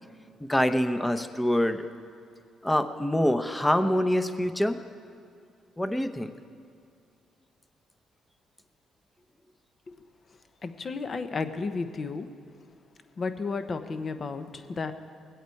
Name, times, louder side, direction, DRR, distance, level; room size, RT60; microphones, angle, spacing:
voice 1, 0.4-1.9 2.6-4.8 5.8-6.3, left 1 dB, 10° left, 9 dB, 0.8 m, -25 dB
voice 2, 10.6-12.3 13.2-14.9, left 4 dB, 40° left, 9 dB, 0.9 m, -32 dB
20.5 x 8.1 x 4.6 m, 2.4 s
cardioid pair, 90°, 0 cm